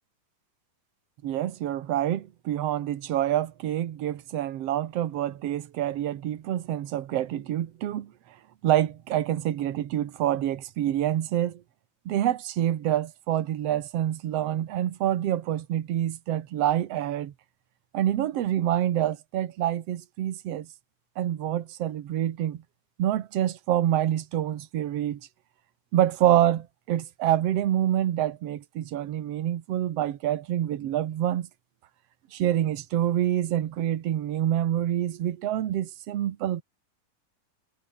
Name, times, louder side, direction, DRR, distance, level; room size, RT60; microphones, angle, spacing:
voice 1, 1.2-8.1 8.6-11.6 12.1-17.3 17.9-20.7 21.2-22.6 23.0-25.2 25.9-31.5 32.3-36.6, right 12 dB, 55° right, 2.0 m, -27 dB
omnidirectional pair, 3.8 m